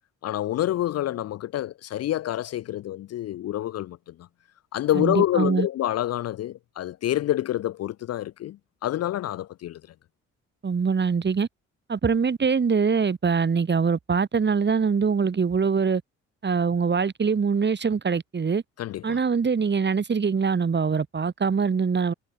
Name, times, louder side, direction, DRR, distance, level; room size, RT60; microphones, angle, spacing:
voice 1, 0.2-4.0 4.7-8.6 8.8-9.8 18.8-19.2, left 13 dB, 40° left, 0.6 m, -27 dB
voice 2, 4.9-5.7 10.6-11.5 11.9-16.0 16.4-18.6 19.0-22.1, right 5 dB, 30° right, 1.9 m, -23 dB
figure-of-eight pair, 40°, 37 cm